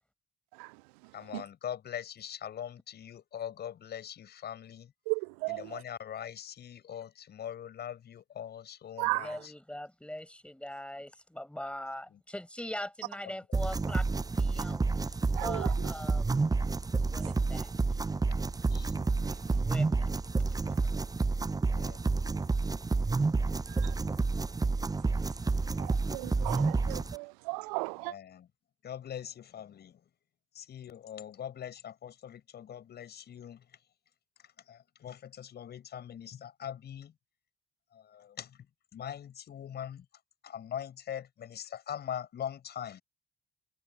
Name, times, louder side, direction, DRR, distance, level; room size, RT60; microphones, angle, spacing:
voice 1, 1.1-4.9 5.5-9.5 12.1-12.2 13.2-13.3 18.7-18.9 21.7-22.0 27.9-28.5 28.8-30.0 30.5-33.7 34.7-37.1 37.9-38.7 38.9-40.1 40.4-43.0, left 9 dB, 55° left, 6.3 m, -42 dB
voice 2, 5.1-5.6 9.0-9.3 15.4-15.7 25.8-28.1, right 32 dB, 75° right, 0.4 m, -34 dB
voice 3, 9.0-14.1 14.3-16.6 17.0-18.0 19.1-20.1 20.5-20.9, left 1 dB, 5° left, 6.3 m, -42 dB
sound 1, 13.5-27.2, right 3 dB, 20° right, 0.8 m, -29 dB
hypercardioid pair, 45°, 20 cm